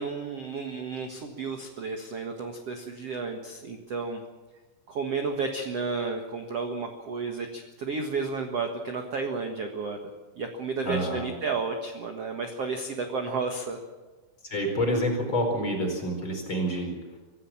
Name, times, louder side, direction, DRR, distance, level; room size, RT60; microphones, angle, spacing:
voice 1, 0.0-4.2 4.9-10.0 10.4-13.8, right 4 dB, 60° right, 4 dB, 1.6 m, -32 dB
voice 2, 10.8-11.3 14.4-17.0, equal, 25° left, 2 dB, 5.0 m, -28 dB
25.5 x 15.5 x 7.3 m, 1.2 s
omnidirectional pair, 5.2 m